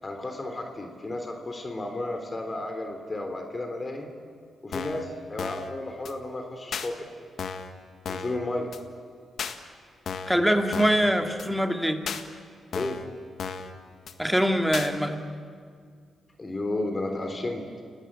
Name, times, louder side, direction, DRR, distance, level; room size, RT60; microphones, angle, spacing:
voice 1, 0.0-4.1 4.6-7.1 8.1-8.7 12.7-13.0 16.4-17.7, left 2 dB, 30° left, 4 dB, 3.4 m, -33 dB
sound 1, 4.7-5.0 5.4-5.7 6.0-6.1 6.7-6.9 7.4-7.7 8.0-8.4 8.7-8.8 9.4-9.6 10.1-10.4 10.7-11.0 11.4-11.5 12.1-12.2 12.7-13.1 13.4-13.7 14.1-14.2 14.7-14.9, left 6 dB, 70° left, 1.7 m, -34 dB
voice 2, 10.3-12.0 14.2-15.2, equal, ahead, 5 dB, 2.4 m, -23 dB
30.0 x 18.0 x 8.9 m, 2.1 s
cardioid pair, 75°, 0 cm